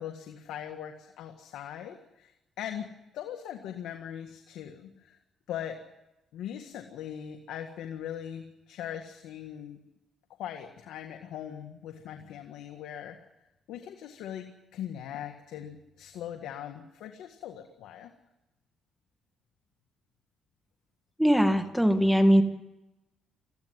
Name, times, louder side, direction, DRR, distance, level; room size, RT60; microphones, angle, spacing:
voice 1, 0.0-2.3 2.6-5.2 5.5-5.8 6.3-9.8 10.4-13.2 13.7-18.1, left 10 dB, 85° left, 5 dB, 1.7 m, -40 dB
voice 2, 21.2-22.4, equal, 5° right, 7 dB, 2.1 m, -21 dB
21.0 x 15.0 x 9.7 m, 0.94 s
cardioid pair, 90°, 0 cm